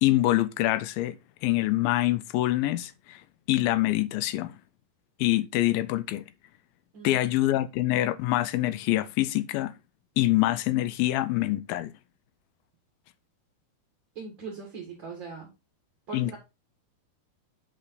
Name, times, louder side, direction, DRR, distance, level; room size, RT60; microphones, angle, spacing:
voice 1, 0.0-1.2 1.4-3.2 3.5-4.5 5.2-6.2 7.0-9.7 10.2-11.9 16.1-16.4, left 16 dB, 85° left, 2.1 m, -25 dB
voice 2, 6.9-7.5 14.2-15.5 16.1-16.4, right 5 dB, 40° right, 1.8 m, -41 dB
8.4 x 5.4 x 4.0 m
omnidirectional pair, 4.7 m